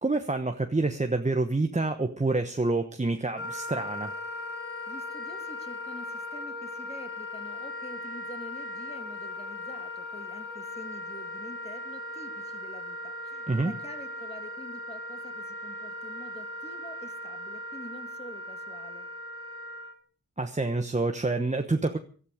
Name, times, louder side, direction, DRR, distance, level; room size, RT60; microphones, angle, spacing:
voice 1, 0.0-4.1 13.5-13.7 20.4-22.0, right 2 dB, 20° right, 6 dB, 1.1 m, -27 dB
Wind instrument woodwind instrument, 3.3-19.9, left 1 dB, 40° left, 4.8 m, -38 dB
voice 2, 4.9-19.1, left 1 dB, 20° left, 6 dB, 2.7 m, -47 dB
17.5 x 12.5 x 5.0 m, 0.42 s
cardioid pair, 55°, 33 cm